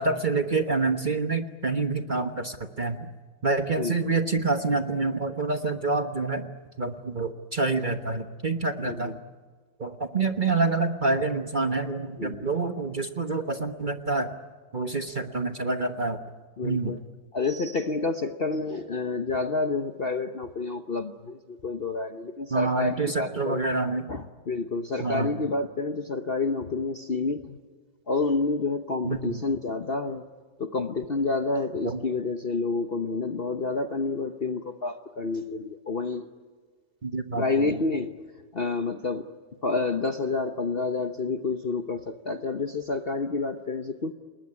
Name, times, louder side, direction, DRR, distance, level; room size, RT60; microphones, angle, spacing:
voice 1, 0.0-3.0 3.4-6.5 6.8-9.2 9.8-14.3 14.7-16.2 16.6-16.9 22.5-24.0 25.0-25.3 29.0-29.4 31.8-32.0 37.0-37.7, right 3 dB, 30° right, 7 dB, 1.1 m, -27 dB
voice 2, 3.8-4.2 8.8-9.2 12.2-12.5 16.6-17.0 17.3-23.6 24.1-27.6 28.1-30.2 30.6-36.3 37.4-38.1 38.5-39.3 39.6-44.1, left 3 dB, 40° left, 7 dB, 0.9 m, -29 dB
29.0 x 20.0 x 9.6 m, 1.5 s
omnidirectional pair, 1.9 m